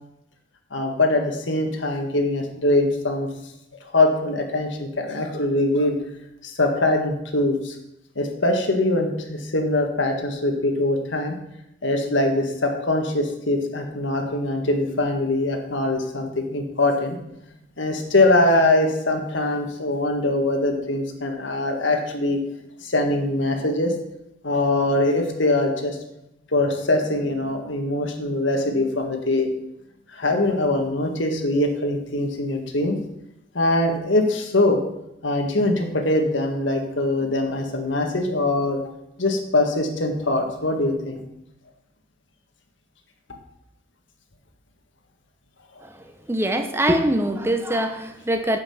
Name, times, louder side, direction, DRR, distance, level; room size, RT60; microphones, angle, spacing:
voice 1, 0.7-3.3 3.9-6.0 6.4-7.8 8.2-11.3 11.8-17.2 17.8-22.4 22.8-23.9 24.4-26.0 26.5-29.5 30.1-33.0 33.5-34.8 35.2-38.8 39.2-41.2, left 2 dB, 80° left, 4 dB, 1.8 m, -22 dB
voice 2, 46.3-48.6, right 1 dB, 15° right, 6 dB, 0.7 m, -23 dB
10.0 x 5.8 x 7.1 m, 0.83 s
head